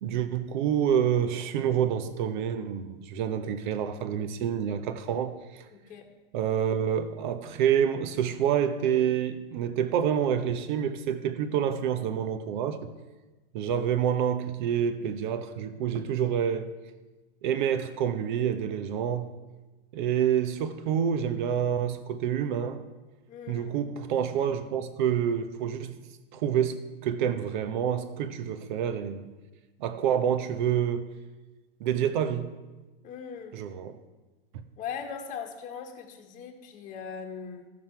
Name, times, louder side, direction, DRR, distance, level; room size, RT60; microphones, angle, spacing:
voice 1, 0.0-5.7 6.3-12.8 13.5-16.7 17.4-19.3 19.9-22.8 23.5-26.0 26.3-29.3 29.8-31.0 31.8-32.5 33.5-34.0, right 9 dB, 50° right, 1.0 m, -27 dB
voice 2, 5.7-6.1 23.3-23.7 33.0-33.5 34.8-37.7, left 7 dB, 25° left, 1.3 m, -39 dB
15.0 x 6.2 x 4.6 m
hypercardioid pair, 130°, 31 cm